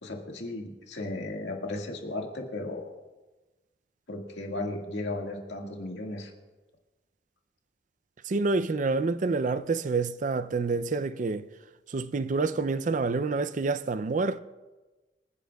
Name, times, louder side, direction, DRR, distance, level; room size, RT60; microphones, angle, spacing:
voice 1, 0.0-2.9 4.1-6.3, left 2 dB, 85° left, 1.9 m, -35 dB
voice 2, 8.3-11.4 11.9-14.4, right 3 dB, 45° right, 0.4 m, -28 dB
26.0 x 10.0 x 2.3 m
head